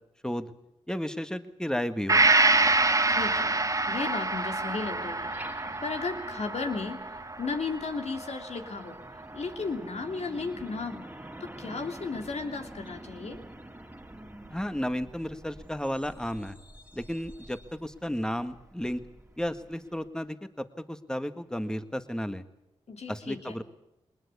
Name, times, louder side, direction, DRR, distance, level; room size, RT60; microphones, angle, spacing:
voice 1, 0.9-2.2 14.5-16.6 16.9-19.0 19.4-22.4 23.1-23.6, equal, 5° left, 10 dB, 1.8 m, -33 dB
Gong, 2.1-9.7 10.1-10.2, right 3 dB, 30° right, 1.4 m, -27 dB
Truck, 2.5-20.1, right 1 dB, 15° right, 2.6 m, -49 dB
voice 2, 3.1-3.6 3.9-9.0 9.3-11.1 11.4-13.4 22.9-23.6, left 4 dB, 75° left, 5 dB, 3.0 m, -35 dB
21.0 x 20.5 x 8.4 m, 0.88 s
cardioid pair, 45°, 11 cm